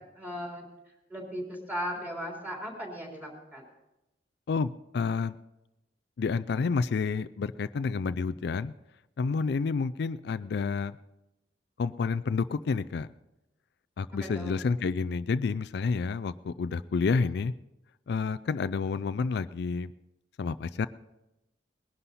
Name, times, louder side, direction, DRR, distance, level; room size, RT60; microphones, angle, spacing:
voice 1, 0.2-0.7 1.1-3.6 14.1-14.6, equal, 10° right, -1 dB, 3.3 m, -37 dB
voice 2, 4.5-5.3 6.2-8.7 9.2-10.9 11.8-13.1 14.0-17.5 18.1-19.9 20.4-20.9, left 4 dB, 65° left, 14 dB, 0.4 m, -29 dB
20.0 x 11.0 x 4.1 m, 0.95 s
head